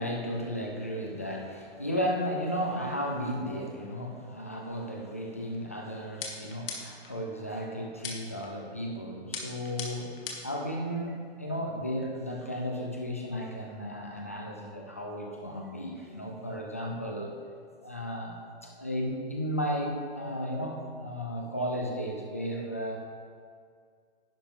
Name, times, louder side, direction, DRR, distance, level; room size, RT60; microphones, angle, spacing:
voice 1, 0.0-17.3 17.8-23.0, equal, 15° left, 0 dB, 0.3 m, -34 dB
sound 1, 6.2-7.1 8.0-8.5 9.3-10.6, left 4 dB, 55° left, 1.9 m, -38 dB
10.5 x 9.9 x 3.5 m, 2.1 s
hypercardioid pair, 170°, 33 cm